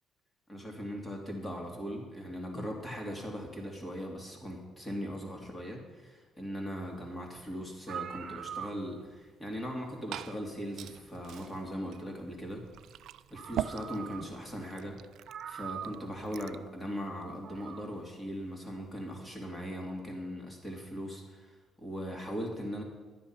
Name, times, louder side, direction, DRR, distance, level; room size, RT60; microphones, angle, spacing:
voice 1, 0.5-12.6 13.3-15.0 15.5-22.8, equal, 15° left, 1 dB, 2.7 m, -39 dB
sound 1, 7.4-7.5 7.8-9.2 10.6-10.7 12.9-13.0 13.3-14.5 14.8-14.9 15.3-16.2 17.3-17.9, right 8 dB, 50° right, 0.7 m, -42 dB
Liquid, 9.6-16.7, right 11 dB, 70° right, 0.4 m, -43 dB
12.5 x 10.0 x 5.8 m, 1.4 s
cardioid pair, 135°, 0 cm